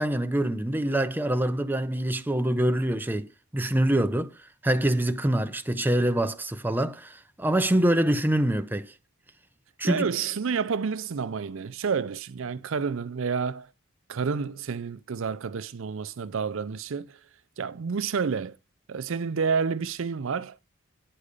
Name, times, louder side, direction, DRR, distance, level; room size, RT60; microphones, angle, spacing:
voice 1, 0.0-4.3 4.6-8.9 9.8-10.1, right 1 dB, 10° right, 0.5 m, -25 dB
voice 2, 9.8-13.7 14.1-17.2 17.6-18.6 18.9-20.6, right 5 dB, 60° right, 0.5 m, -29 dB
10.0 x 4.9 x 6.5 m
head